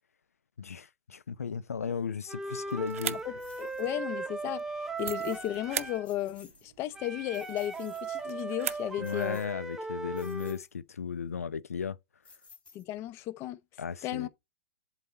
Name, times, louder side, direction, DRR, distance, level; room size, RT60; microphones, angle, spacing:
voice 1, 0.6-3.2 9.0-12.0 13.8-14.3, left 6 dB, 85° left, 0.5 m, -35 dB
Wind instrument woodwind instrument, 2.3-6.1 6.9-10.6, right 3 dB, 5° right, 0.9 m, -38 dB
sound 1, 2.6-9.3, right 10 dB, 65° right, 0.6 m, -42 dB
sound 2, 3.4-3.9 5.0-5.6 5.9-6.7 7.1-8.2 9.0-9.7 10.1-10.7 12.2-13.1, left 4 dB, 15° left, 3.0 m, -57 dB
voice 2, 3.6-9.4 12.7-13.6 14.0-14.3, left 13 dB, 35° left, 0.7 m, -35 dB
7.8 x 4.1 x 4.2 m
hypercardioid pair, 120°, 8 cm